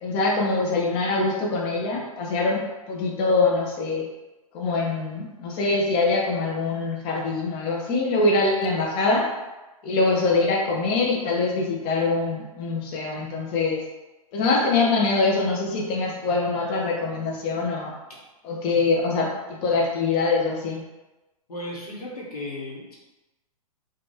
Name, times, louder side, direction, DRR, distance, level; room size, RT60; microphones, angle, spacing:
voice 1, 0.0-4.0 4.5-9.3 9.8-13.8 14.3-18.0 18.4-19.3 19.6-20.8, left 3 dB, 30° left, -2 dB, 0.5 m, -24 dB
voice 2, 21.5-23.0, left 1 dB, 90° left, -4 dB, 0.9 m, -35 dB
2.5 x 2.2 x 3.1 m, 1.1 s
hypercardioid pair, 125°, 19 cm